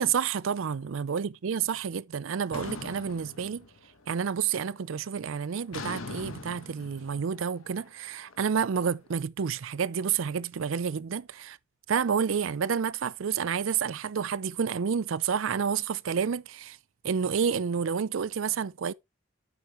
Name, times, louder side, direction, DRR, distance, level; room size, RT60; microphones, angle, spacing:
voice 1, 0.0-3.6 4.1-11.6 11.9-16.8 17.0-18.9, right 7 dB, 70° right, 0.5 m, -29 dB
sound 1, 2.5-4.1 4.4-4.8 5.7-8.8, left 3 dB, 85° left, 1.3 m, -42 dB
9.2 x 7.9 x 3.0 m
head